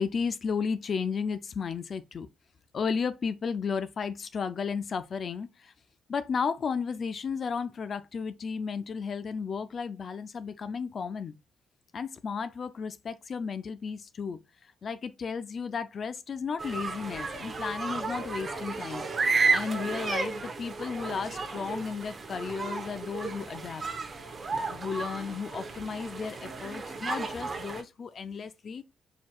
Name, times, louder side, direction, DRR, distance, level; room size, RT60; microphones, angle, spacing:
voice 1, 0.0-2.3 2.7-5.7 6.1-11.3 11.9-19.0 19.5-23.9 24.7-28.8, left 5 dB, 50° left, 0.5 m, -34 dB
sound 1, 16.6-27.8, right 4 dB, 35° right, 1.0 m, -33 dB
4.5 x 4.4 x 2.4 m
cardioid pair, 90°, 0 cm